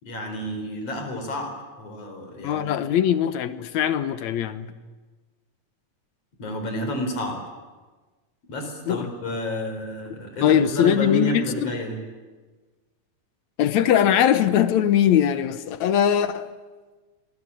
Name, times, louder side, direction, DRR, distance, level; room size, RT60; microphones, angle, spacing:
voice 1, 0.0-1.5 1.8-2.6 6.4-7.4 8.5-12.0, equal, 55° left, 5.3 m, -30 dB
voice 2, 2.4-4.7 8.9-9.1 10.4-11.7 13.6-16.5, left 10 dB, 75° left, 2.4 m, -21 dB
27.0 x 20.5 x 8.6 m
omnidirectional pair, 3.3 m